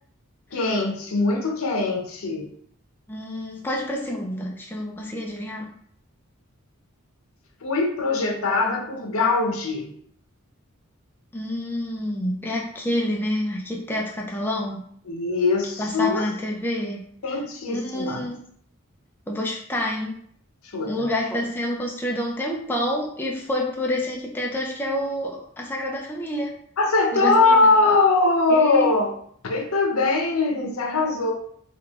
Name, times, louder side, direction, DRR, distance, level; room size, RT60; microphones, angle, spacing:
voice 1, 0.5-2.5 7.6-9.9 15.1-16.2 17.2-18.2 20.7-21.1 26.8-29.1 29.4-31.3, left 3 dB, 80° left, 1 dB, 0.7 m, -21 dB
voice 2, 3.1-5.7 11.3-14.8 15.8-17.0 17.7-18.5 19.3-20.2 20.9-26.6 27.1-27.6 27.8-28.1 28.5-28.9, left 1 dB, 10° left, -1 dB, 0.4 m, -28 dB
3.7 x 2.3 x 3.5 m, 0.65 s
head